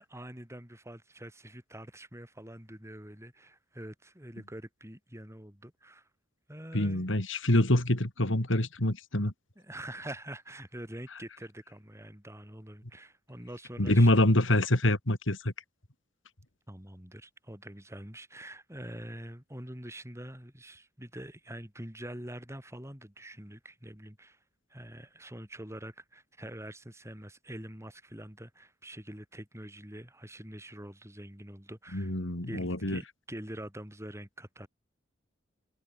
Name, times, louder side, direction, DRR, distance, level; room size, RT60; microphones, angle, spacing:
voice 1, 0.0-6.1 6.5-7.1 9.5-14.1 16.7-24.4 24.7-32.1 32.4-34.7, right 1 dB, 15° right, 6.8 m, -45 dB
voice 2, 6.7-9.3 13.8-15.5 31.9-33.0, left 1 dB, 80° left, 3.5 m, -25 dB
head